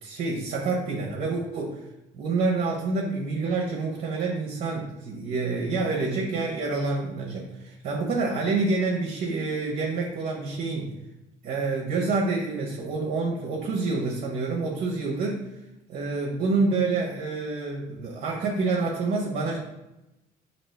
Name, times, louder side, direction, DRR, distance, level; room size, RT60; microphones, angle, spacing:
voice 1, 0.0-1.8 2.1-10.9 11.4-15.4 15.9-19.6, right 3 dB, 55° right, -3 dB, 0.8 m, -27 dB
4.3 x 2.7 x 3.3 m, 0.95 s
cardioid pair, 110°, 17 cm